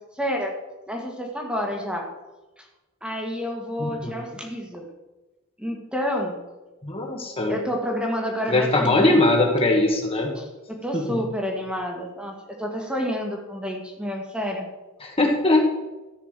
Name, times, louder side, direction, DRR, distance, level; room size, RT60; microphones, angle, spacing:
voice 1, 0.2-0.5 0.9-2.1 2.6-2.7 3.0-4.8 5.6-6.4 7.5-9.2 10.4-14.7, equal, 5° right, 1 dB, 1.7 m, -29 dB
voice 2, 3.8-4.1 6.8-7.6 8.5-10.3 10.9-11.2 15.0-15.6, left 2 dB, 25° left, 1 dB, 1.5 m, -21 dB
13.5 x 5.9 x 7.4 m, 1.1 s
head